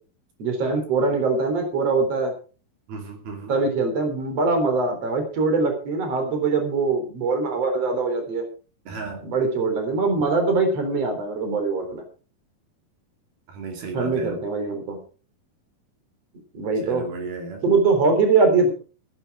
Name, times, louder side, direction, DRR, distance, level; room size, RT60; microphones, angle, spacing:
voice 1, 0.4-2.3 3.5-8.4 9.2-12.0 13.9-15.0 16.5-17.1 17.6-18.7, right 4 dB, 40° right, 4.5 m, -22 dB
voice 2, 2.9-3.5 8.9-9.3 13.5-14.4 16.8-17.6, right 4 dB, 75° right, 4.5 m, -34 dB
15.5 x 11.0 x 4.8 m
omnidirectional pair, 4.4 m